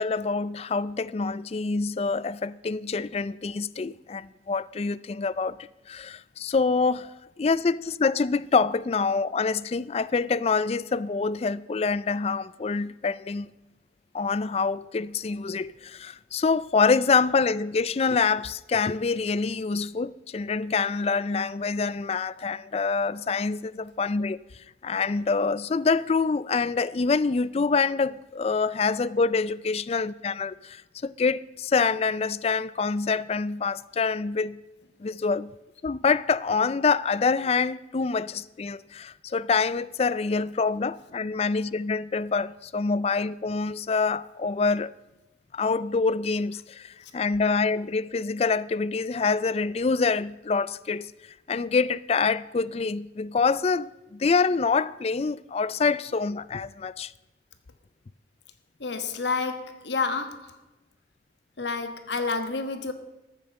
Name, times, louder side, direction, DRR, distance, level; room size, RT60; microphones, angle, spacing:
voice 1, 0.0-5.6 5.9-7.1 7.4-13.5 14.1-24.4 24.8-34.6 35.0-35.5 35.8-44.9 45.5-51.1 51.5-57.1, left 4 dB, 35° left, 0.4 m, -26 dB
voice 2, 58.8-60.6 61.6-62.9, left 4 dB, 75° left, 1.2 m, -29 dB
14.0 x 9.1 x 6.5 m
head